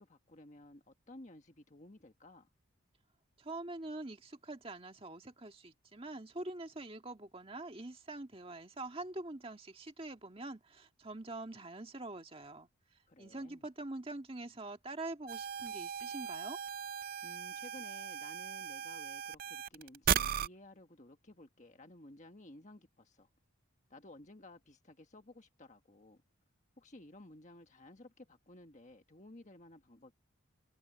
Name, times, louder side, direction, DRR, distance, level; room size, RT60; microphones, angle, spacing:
voice 1, 0.0-2.5 13.1-13.6 17.2-23.3 23.9-26.2 26.8-30.1, left 1 dB, 35° left, 1.5 m, -55 dB
voice 2, 3.4-12.7 13.2-16.6, right 2 dB, 25° right, 1.7 m, -45 dB
sound 1, 15.3-20.5, right 8 dB, 40° right, 0.4 m, -37 dB
head